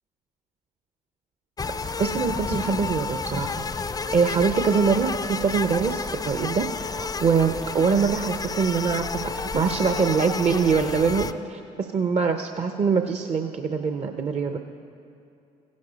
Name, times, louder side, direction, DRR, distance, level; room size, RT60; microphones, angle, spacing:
sound 1, 1.6-11.3, left 4 dB, 20° left, 0.5 m, -31 dB
voice 1, 2.0-3.6 4.1-14.6, right 5 dB, 40° right, 6 dB, 0.7 m, -24 dB
16.0 x 10.5 x 4.0 m, 2.7 s
hypercardioid pair, 65°, 17 cm